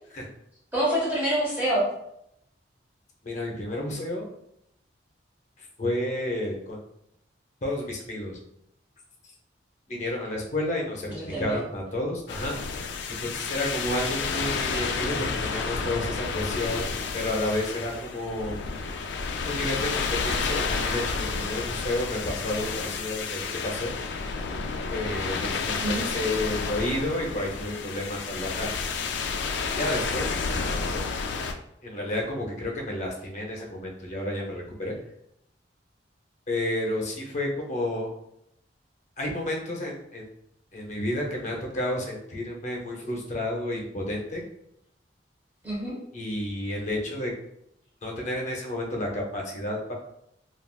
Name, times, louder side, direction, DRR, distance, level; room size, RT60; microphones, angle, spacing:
voice 1, 0.7-1.9 11.1-11.6 25.8-26.0 45.6-46.0, right 1 dB, 10° right, -9 dB, 0.9 m, -26 dB
voice 2, 3.2-4.3 5.6-6.8 7.6-8.4 9.9-12.8 13.2-16.8 17.1-18.6 19.4-23.9 24.9-28.7 29.7-31.1 31.8-35.0 36.5-38.1 39.2-40.3 40.7-44.4 46.1-47.3 48.0-49.9, left 1 dB, 40° left, 0 dB, 0.6 m, -31 dB
sound 1, 12.3-31.5, left 5 dB, 75° left, 0.3 m, -30 dB
3.3 x 2.3 x 2.3 m, 0.77 s
head